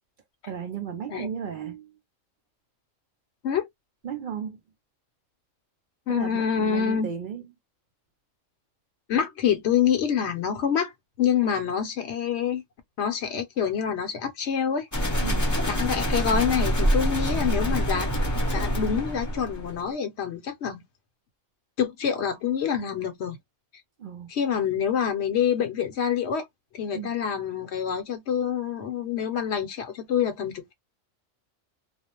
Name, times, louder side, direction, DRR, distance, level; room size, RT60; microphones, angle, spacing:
voice 1, 0.4-2.0 4.0-4.6 6.1-7.5 15.2-15.6 24.0-24.3 26.9-27.1, right 8 dB, 65° right, 0.5 m, -35 dB
voice 2, 6.1-7.1 9.1-12.6 13.0-15.2 15.6-20.8 21.8-23.4 24.3-26.5 26.7-30.7, left 8 dB, 65° left, 0.8 m, -26 dB
sound 1, 14.9-19.8, equal, 20° left, 0.5 m, -25 dB
2.4 x 2.0 x 2.8 m
omnidirectional pair, 1.3 m